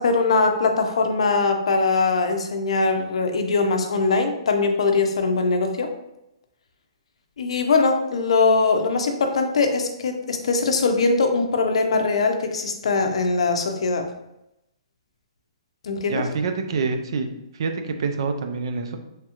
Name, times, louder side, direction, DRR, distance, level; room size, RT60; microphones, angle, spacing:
voice 1, 0.0-5.9 7.4-14.1 15.8-16.2, left 4 dB, 70° left, 5 dB, 0.5 m, -21 dB
voice 2, 16.1-17.3 17.5-19.0, right 4 dB, 50° right, 6 dB, 0.4 m, -26 dB
3.2 x 2.3 x 2.9 m, 0.85 s
hypercardioid pair, 165°, 3 cm